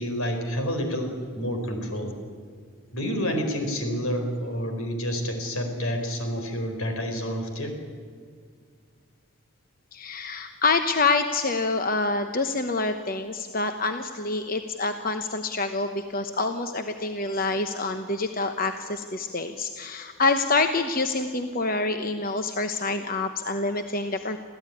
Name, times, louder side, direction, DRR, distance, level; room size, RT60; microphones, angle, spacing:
voice 1, 0.0-2.1 2.9-7.7, equal, 80° left, 5 dB, 4.7 m, -29 dB
voice 2, 9.9-24.4, left 3 dB, 40° left, 7 dB, 1.0 m, -27 dB
26.5 x 15.5 x 9.9 m, 2.1 s
head